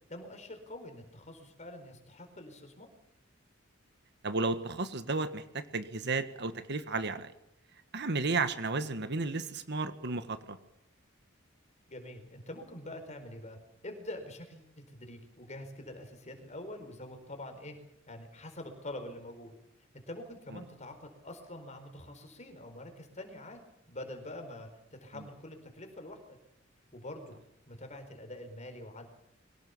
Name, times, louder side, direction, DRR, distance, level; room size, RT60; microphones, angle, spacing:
voice 1, 0.1-2.9 11.9-17.8 18.1-19.5 19.9-23.6 23.9-26.2 26.9-27.4 27.7-29.1, left 1 dB, 35° left, 6 dB, 4.5 m, -45 dB
voice 2, 4.2-7.3 7.9-10.6, right 3 dB, 55° right, 11 dB, 1.5 m, -33 dB
23.0 x 17.5 x 7.2 m, 0.80 s
head